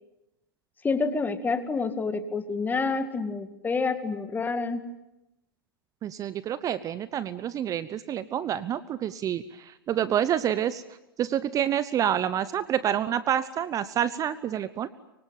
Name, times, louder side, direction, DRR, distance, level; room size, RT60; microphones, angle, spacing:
voice 1, 0.8-4.8, left 4 dB, 15° left, 11 dB, 2.0 m, -28 dB
voice 2, 6.0-10.8 11.2-14.9, right 10 dB, 30° right, 15 dB, 0.9 m, -28 dB
24.5 x 24.5 x 9.1 m, 0.93 s
hypercardioid pair, 105°, 12 cm